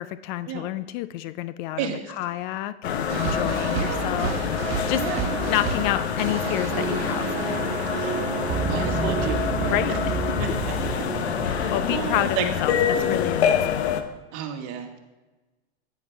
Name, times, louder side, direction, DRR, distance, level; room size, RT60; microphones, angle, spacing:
voice 1, 0.0-7.6 9.7-10.9 11.7-13.9, left 14 dB, 50° left, 14 dB, 0.5 m, -30 dB
voice 2, 1.8-2.1 3.7-4.4 4.9-5.4 7.9-8.2 8.7-9.8 10.4-10.5 11.0-13.1 14.3-15.0, right 9 dB, 50° right, 4 dB, 1.7 m, -33 dB
sound 1, 2.8-14.0, left 7 dB, 85° left, 1.0 m, -26 dB
sound 2, 3.1-11.3, right 7 dB, 65° right, 1.4 m, -33 dB
sound 3, 6.7-12.1, right 7 dB, 20° right, 0.4 m, -31 dB
10.5 x 9.3 x 3.4 m, 1.1 s
hypercardioid pair, 110°, 32 cm